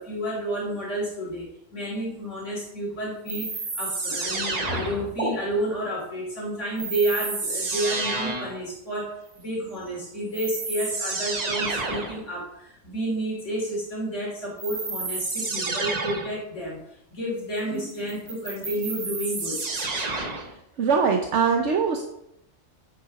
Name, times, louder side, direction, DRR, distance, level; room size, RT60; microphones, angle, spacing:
voice 1, 0.0-19.7, right 1 dB, 75° left, -5 dB, 3.4 m, -30 dB
sound 1, 3.3-5.3 6.8-8.6 9.9-10.0 10.3-12.2 14.6-16.4 18.1-20.5, right 3 dB, 35° right, 1.2 m, -30 dB
voice 2, 20.8-22.0, right 5 dB, 70° right, 3 dB, 1.2 m, -22 dB
9.8 x 7.8 x 4.1 m, 0.82 s
omnidirectional pair, 1.3 m